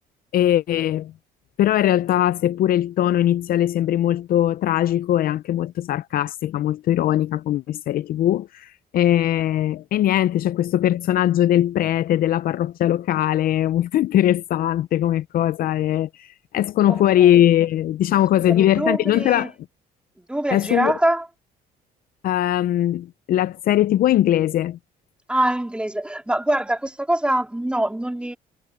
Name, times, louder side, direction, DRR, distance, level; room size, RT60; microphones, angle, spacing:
voice 1, 0.3-1.1 1.6-19.5 20.5-20.9 22.2-24.8, left 12 dB, 60° left, 0.6 m, -20 dB
voice 2, 16.9-17.3 18.5-19.5 20.2-21.3 25.3-28.4, right 1 dB, 5° right, 3.1 m, -24 dB
cardioid pair, 110°, 17 cm